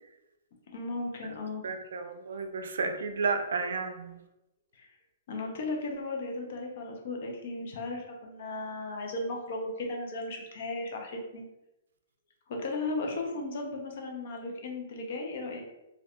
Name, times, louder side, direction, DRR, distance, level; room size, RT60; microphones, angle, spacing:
voice 1, 0.7-1.6 4.8-4.9 5.3-11.5 12.5-15.6, left 2 dB, 60° left, 1 dB, 0.7 m, -36 dB
voice 2, 1.6-4.1, right 4 dB, 80° right, 6 dB, 0.4 m, -32 dB
2.6 x 2.4 x 2.3 m, 0.95 s
hypercardioid pair, 150°, 0 cm